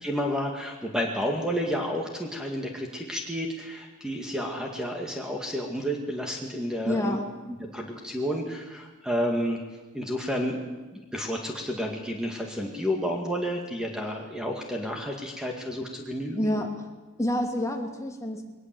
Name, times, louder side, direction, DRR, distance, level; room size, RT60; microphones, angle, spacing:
voice 1, 0.0-7.2 7.5-9.6 9.9-10.6 10.9-16.6, equal, 5° right, 1 dB, 2.1 m, -31 dB
voice 2, 6.9-7.3 16.3-16.8 17.2-18.5, left 1 dB, 15° left, 3 dB, 2.5 m, -28 dB
22.5 x 19.5 x 7.8 m, 1.2 s
head